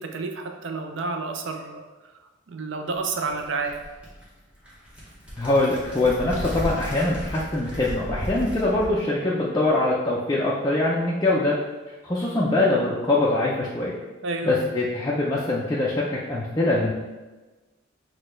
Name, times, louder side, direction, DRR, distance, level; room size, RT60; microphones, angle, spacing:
voice 1, 0.0-2.2 2.5-3.8 14.2-14.7, right 3 dB, 65° right, 5 dB, 0.5 m, -30 dB
sound 1, 2.9-9.0, equal, 5° right, 0.9 m, -35 dB
voice 2, 5.4-11.6 12.0-14.0 14.4-16.9, left 2 dB, 20° left, -6 dB, 0.4 m, -23 dB
6.0 x 2.2 x 3.2 m, 1.2 s
head